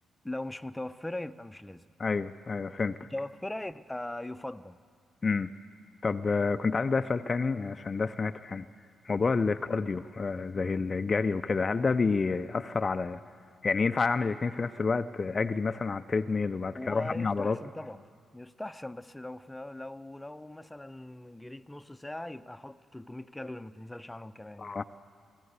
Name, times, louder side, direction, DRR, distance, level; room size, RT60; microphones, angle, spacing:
voice 1, 0.2-1.9 3.1-4.8 16.7-18.1 18.3-24.7, left 1 dB, 10° left, 0.8 m, -40 dB
voice 2, 2.0-3.1 5.2-5.5 6.0-8.7 9.0-13.2 13.6-17.6 24.6-24.8, left 4 dB, 40° left, 0.6 m, -29 dB
23.5 x 16.0 x 8.3 m
hypercardioid pair, 45°, 0 cm